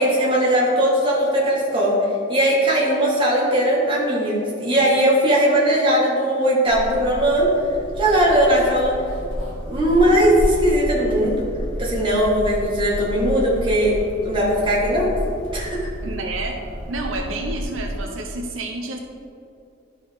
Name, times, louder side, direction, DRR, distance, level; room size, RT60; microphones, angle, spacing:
voice 1, 0.0-2.0 2.3-7.5 8.0-8.9 9.7-11.4 11.8-13.9 14.2-15.1 15.5-15.9, right 1 dB, 25° right, -5 dB, 1.8 m, -19 dB
sound 1, 6.7-18.0, equal, 90° left, 1.8 m, -31 dB
voice 2, 16.0-16.6 16.9-19.0, right 2 dB, 85° right, 2 dB, 0.7 m, -29 dB
11.5 x 4.5 x 3.6 m, 2.6 s
head